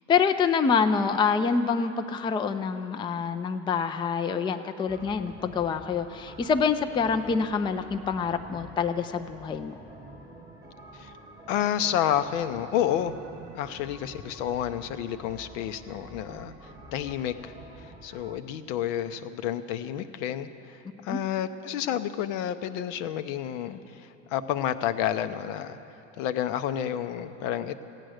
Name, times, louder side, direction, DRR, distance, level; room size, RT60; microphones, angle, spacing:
voice 1, 0.1-9.8 21.1-21.2, left 5 dB, 15° left, 8 dB, 0.4 m, -26 dB
sound 1, 4.9-18.4, right 2 dB, 10° right, 1.1 m, -47 dB
voice 2, 11.5-13.1 13.5-17.5 17.8-25.8 26.2-27.8, left 10 dB, 75° left, 11 dB, 0.7 m, -30 dB
15.0 x 9.2 x 6.4 m, 2.9 s
supercardioid pair, 100°, 38 cm